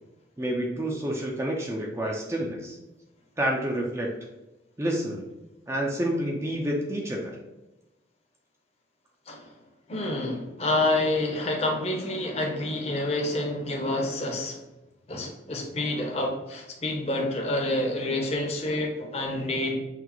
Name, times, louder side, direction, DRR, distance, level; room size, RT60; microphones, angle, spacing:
voice 1, 0.4-2.8 3.4-4.1 4.8-5.2 5.7-7.4, right 1 dB, 15° right, -1 dB, 0.4 m, -29 dB
voice 2, 9.9-14.6 15.1-19.8, left 1 dB, 35° left, 1 dB, 0.6 m, -28 dB
5.8 x 2.0 x 2.9 m, 1.0 s
head